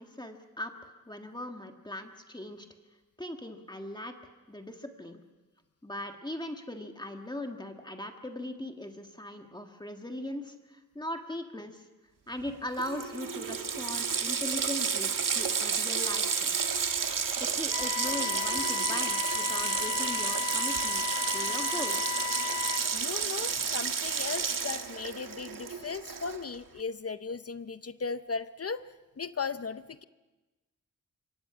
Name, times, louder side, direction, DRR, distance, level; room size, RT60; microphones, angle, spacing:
voice 1, 0.0-2.7 3.2-4.2 4.5-5.2 5.8-11.9 12.3-16.8 17.4-21.0 21.3-22.1, left 1 dB, 15° left, 4 dB, 1.6 m, -39 dB
Water tap faucet, 12.5-12.6 12.8-26.5, right 6 dB, 70° right, 1.6 m, -31 dB
sound 1, 17.7-22.8, left 11 dB, 70° left, 2.3 m, -35 dB
voice 2, 22.9-28.8 29.2-30.0, left 5 dB, 45° left, 12 dB, 0.7 m, -37 dB
26.5 x 24.0 x 6.0 m, 1.1 s
wide cardioid pair, 110°, 33 cm